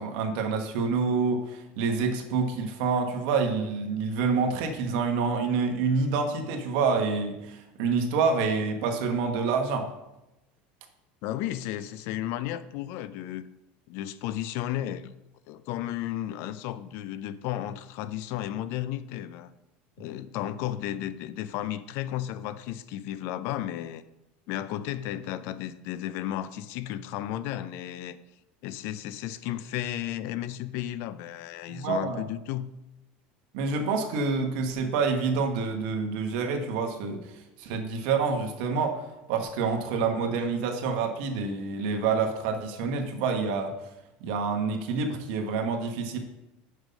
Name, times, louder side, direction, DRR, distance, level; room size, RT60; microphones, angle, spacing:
voice 1, 0.0-9.9 31.7-32.2 33.5-39.0 39.3-43.7 44.2-46.2, right 4 dB, 70° right, 4 dB, 1.3 m, -27 dB
voice 2, 11.2-13.5 13.9-15.1 15.5-19.5 20.0-24.0 24.5-28.2 28.6-32.7, left 12 dB, 60° left, 15 dB, 0.4 m, -33 dB
6.3 x 5.5 x 5.2 m, 0.92 s
supercardioid pair, 140°, 5 cm